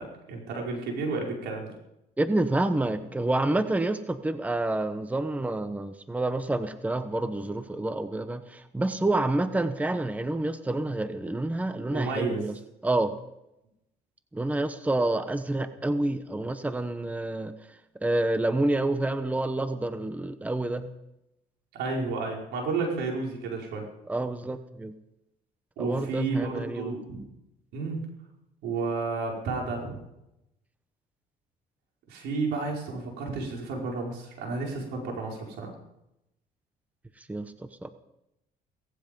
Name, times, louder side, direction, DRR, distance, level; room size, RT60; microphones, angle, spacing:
voice 1, 0.0-1.7 11.9-12.4 21.7-23.8 25.8-27.2 27.7-28.0 28.6-30.0 32.1-35.7, right 3 dB, 85° right, 0 dB, 5.3 m, -31 dB
voice 2, 2.2-12.5 12.8-13.2 14.3-17.5 18.0-20.9 24.1-24.9 25.8-26.9 37.3-37.9, right 2 dB, 10° right, 10 dB, 1.0 m, -28 dB
18.0 x 15.0 x 5.4 m, 0.87 s
cardioid pair, 110°, 17 cm